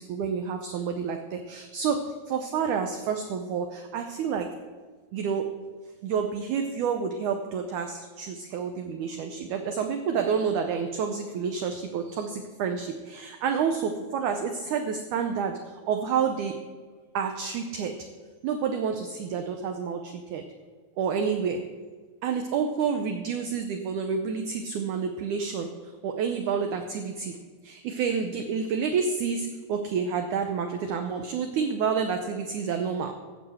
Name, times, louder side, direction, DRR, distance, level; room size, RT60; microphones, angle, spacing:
voice 1, 0.0-4.6 5.1-5.5 6.0-16.6 17.1-18.1 18.4-20.5 21.0-21.7 22.2-27.3 27.6-33.1, right 6 dB, 80° right, 5 dB, 1.8 m, -29 dB
14.5 x 5.2 x 7.7 m, 1.5 s
omnidirectional pair, 4.4 m